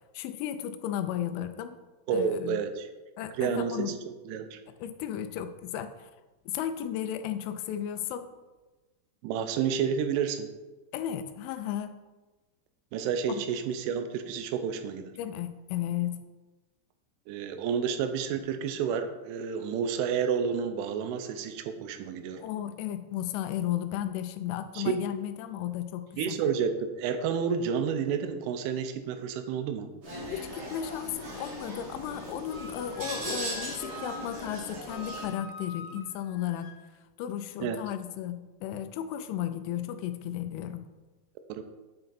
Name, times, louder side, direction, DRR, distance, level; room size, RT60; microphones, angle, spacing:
voice 1, 0.1-1.8 2.1-2.6 3.2-3.9 4.8-6.1 6.5-8.3 10.9-11.9 13.3-13.4 15.2-16.1 22.4-26.4 30.3-36.7 37.2-38.4 38.6-40.8, left 11 dB, 85° left, 10 dB, 3.0 m, -34 dB
voice 2, 2.1-2.9 3.4-4.6 9.2-10.5 12.9-15.1 17.3-22.4 24.7-24.8 26.2-29.9 37.6-37.8 41.5-41.6, right 7 dB, 90° right, 7 dB, 3.1 m, -30 dB
sound 1, 30.0-35.3, right 1 dB, 55° right, 1.3 m, -39 dB
Wind instrument woodwind instrument, 32.5-36.8, left 2 dB, 70° left, 2.0 m, -44 dB
8.9 x 4.5 x 4.0 m, 1.2 s
omnidirectional pair, 5.5 m